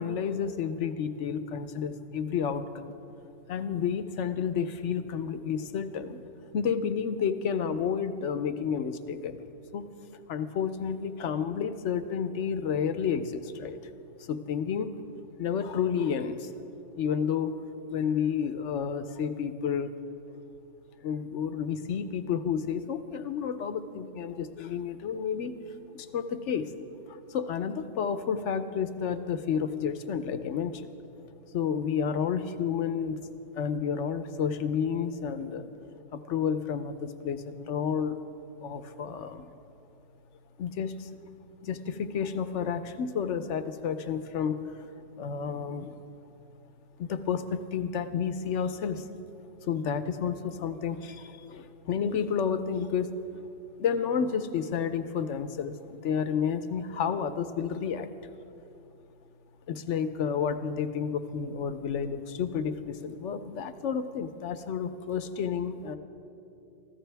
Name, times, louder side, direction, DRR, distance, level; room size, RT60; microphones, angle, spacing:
voice 1, 0.0-2.9 3.5-6.2 6.5-9.9 10.3-13.8 14.3-14.9 15.4-16.5 17.0-17.6 17.9-19.9 21.0-25.5 25.9-26.7 27.1-30.9 31.5-33.3 33.5-35.7 36.1-38.2 38.6-39.5 40.6-41.1 41.6-44.9 45.2-45.9 47.0-49.1 49.6-53.4 53.8-58.1 59.7-66.0, left 7 dB, 75° left, 11 dB, 1.1 m, -31 dB
23.5 x 14.5 x 3.4 m, 2.8 s
omnidirectional pair, 1.3 m